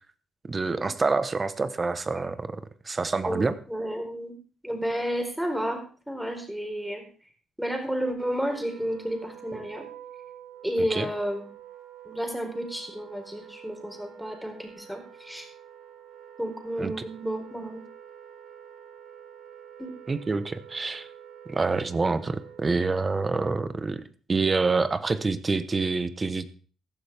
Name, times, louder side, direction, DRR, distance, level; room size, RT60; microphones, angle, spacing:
voice 1, 0.5-2.6 2.8-3.5 10.9-11.1 16.8-16.9 20.1-21.1 21.5-24.0 24.3-26.4, right 4 dB, 30° right, 13 dB, 1.2 m, -27 dB
voice 2, 3.2-4.3 4.6-7.0 7.6-9.8 10.6-11.4 12.0-15.5 16.4-17.8 19.8-19.9, equal, 5° right, 3 dB, 4.3 m, -31 dB
Wind instrument woodwind instrument, 8.0-22.9, right 9 dB, 80° right, 2.7 m, -48 dB
15.5 x 12.0 x 3.6 m, 0.40 s
cardioid pair, 90°, 0 cm